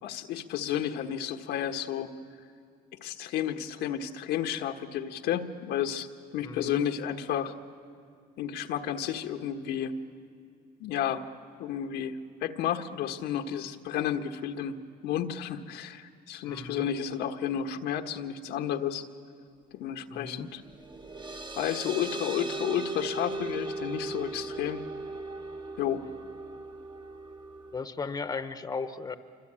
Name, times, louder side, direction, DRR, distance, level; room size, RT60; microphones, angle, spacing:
voice 1, 0.0-2.1 3.0-7.5 8.4-9.9 10.8-11.2 11.6-14.7 15.0-19.0 19.7-20.6 21.6-24.8 25.8-26.0, left 9 dB, 85° left, 5 dB, 1.4 m, -32 dB
voice 2, 6.4-6.8 16.4-16.9 20.1-20.5 27.7-29.2, left 4 dB, 20° left, 10 dB, 1.0 m, -36 dB
sound 1, 20.6-27.8, right 3 dB, 25° right, 1.2 m, -38 dB
27.0 x 24.5 x 8.8 m, 2.5 s
cardioid pair, 110°, 17 cm